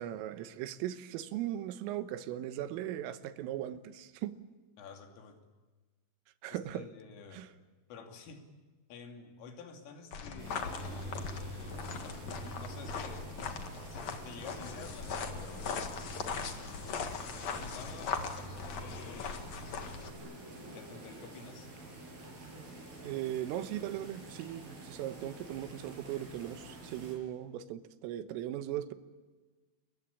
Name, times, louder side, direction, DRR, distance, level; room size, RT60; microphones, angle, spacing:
voice 1, 0.0-4.4 6.4-6.9 7.3-7.5 23.0-28.9, right 12 dB, 90° right, 3.8 m, -38 dB
voice 2, 4.8-5.4 6.5-7.5 7.9-8.4 8.9-13.3 13.7-16.2 16.6-19.5 20.7-21.7, left 5 dB, 80° left, 5.3 m, -50 dB
sound 1, 10.1-20.1, left 5 dB, 55° left, 1.9 m, -39 dB
sound 2, 10.4-27.1, right 2 dB, 45° right, 9.1 m, -49 dB
29.5 x 22.5 x 8.6 m
omnidirectional pair, 5.8 m